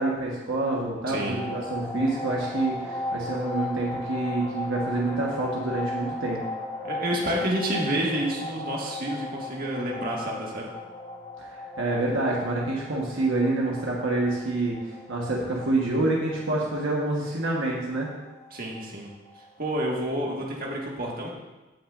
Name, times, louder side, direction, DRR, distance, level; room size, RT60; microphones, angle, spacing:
voice 1, 0.0-6.4 11.4-18.1, right 2 dB, 70° right, -3 dB, 1.3 m, -27 dB
voice 2, 1.1-1.4 6.8-10.6 18.5-19.1 19.6-21.3, right 1 dB, 50° right, -2 dB, 1.7 m, -29 dB
sound 1, 1.2-19.8, left 2 dB, 35° left, 1.6 m, -37 dB
16.0 x 5.9 x 2.5 m, 1.1 s
head